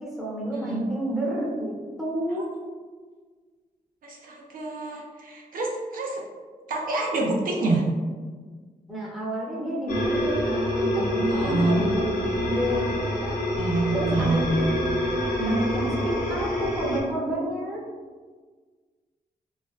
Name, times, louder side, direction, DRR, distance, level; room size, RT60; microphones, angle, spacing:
voice 1, 0.0-2.5 8.9-13.4 13.9-14.6 15.4-17.8, right 1 dB, ahead, -5 dB, 0.6 m, -30 dB
voice 2, 0.5-0.8 4.0-6.2 6.7-7.8 11.3-11.8 13.6-14.5, right 2 dB, 70° right, -1 dB, 0.4 m, -27 dB
sound 1, 9.9-17.0, equal, 90° left, 0.7 m, -26 dB
2.4 x 2.2 x 2.3 m, 1.5 s
cardioid pair, 80°, 15 cm